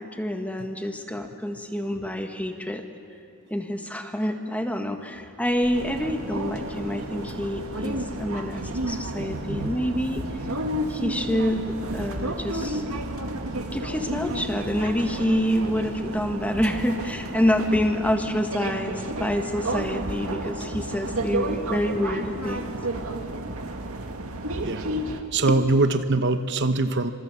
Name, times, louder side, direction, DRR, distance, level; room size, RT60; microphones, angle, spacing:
voice 1, 0.0-2.9 3.5-10.2 10.9-12.8 13.7-22.7 25.5-25.6, equal, 5° left, 5 dB, 1.6 m, -27 dB
sound 1, 5.4-17.1, equal, 65° left, 4.4 m, -48 dB
sound 2, 5.7-25.2, right 1 dB, 75° right, 2.1 m, -31 dB
voice 2, 25.3-27.1, right 2 dB, 55° right, 9 dB, 0.9 m, -22 dB
25.5 x 25.0 x 8.3 m, 2.6 s
head